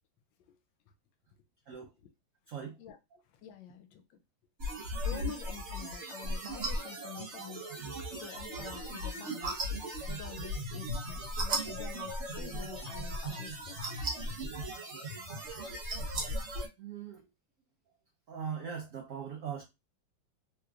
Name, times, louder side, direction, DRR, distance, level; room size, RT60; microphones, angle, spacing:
voice 1, 2.5-2.8 4.9-5.0 16.8-17.2 18.3-19.6, right 7 dB, 80° right, 0.7 m, -40 dB
voice 2, 3.3-4.2 4.8-7.7 8.0-9.6 9.9-13.9, left 9 dB, 85° left, 1.3 m, -48 dB
sound 1, 4.6-16.7, right 1 dB, 50° right, 1.0 m, -37 dB
3.4 x 3.0 x 2.3 m
omnidirectional pair, 2.1 m